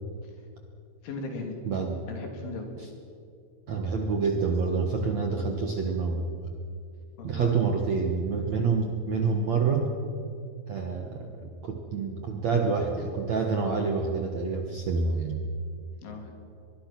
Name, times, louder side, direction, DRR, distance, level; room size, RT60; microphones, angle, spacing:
voice 1, 1.0-1.6 2.1-2.7 7.2-7.6 16.0-16.4, left 3 dB, 85° left, 3 dB, 5.6 m, -37 dB
voice 2, 1.7-2.0 3.7-6.3 7.2-9.9 10.7-15.4, right 5 dB, 60° right, 3 dB, 1.8 m, -27 dB
23.5 x 22.5 x 6.1 m, 2.5 s
omnidirectional pair, 5.3 m